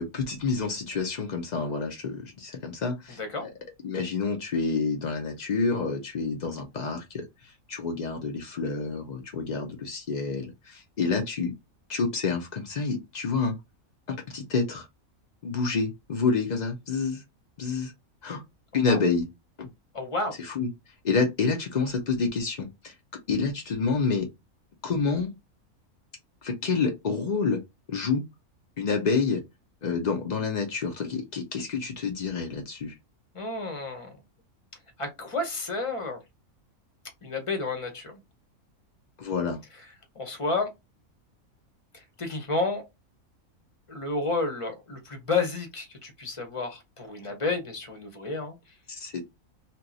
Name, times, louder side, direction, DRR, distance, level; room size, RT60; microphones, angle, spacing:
voice 1, 0.0-3.5 3.8-7.2 7.7-11.5 11.9-13.5 14.1-14.9 15.4-17.2 17.6-17.9 18.2-18.4 18.7-19.2 19.6-19.7 20.4-20.7 21.0-22.9 23.3-24.3 24.8-25.3 26.4-27.6 27.9-28.2 28.8-29.4 29.8-32.9 39.2-39.6 49.0-49.2, left 4 dB, 75° left, 0.4 m, -28 dB
voice 2, 19.9-20.3 33.3-34.2 35.0-36.2 37.2-38.2 40.2-40.7 42.2-42.8 43.9-48.6, left 3 dB, 30° left, 0.7 m, -30 dB
2.9 x 2.2 x 3.9 m
omnidirectional pair, 1.5 m